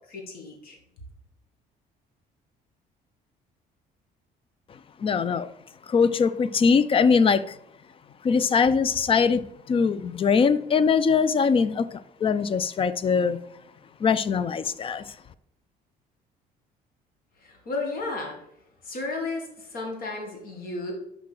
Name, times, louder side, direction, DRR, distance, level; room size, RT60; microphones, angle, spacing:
voice 1, 0.1-0.8 17.4-18.4 18.8-20.9, left 3 dB, 60° left, 1.9 m, -33 dB
voice 2, 5.0-5.5 5.9-7.6 8.2-11.9 12.2-13.4 14.0-15.1, left 5 dB, 30° left, 0.4 m, -22 dB
6.0 x 5.2 x 4.7 m
cardioid pair, 110°, 17 cm